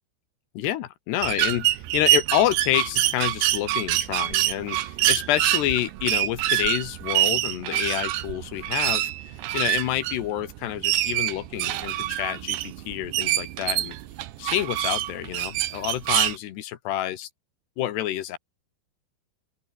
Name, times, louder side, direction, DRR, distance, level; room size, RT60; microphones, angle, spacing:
voice 1, 0.6-14.0 14.4-17.3 17.8-18.4, left 12 dB, 70° left, 3.4 m, -28 dB
sound 1, 1.2-16.4, right 14 dB, 75° right, 3.6 m, -25 dB
open air
omnidirectional pair, 5.2 m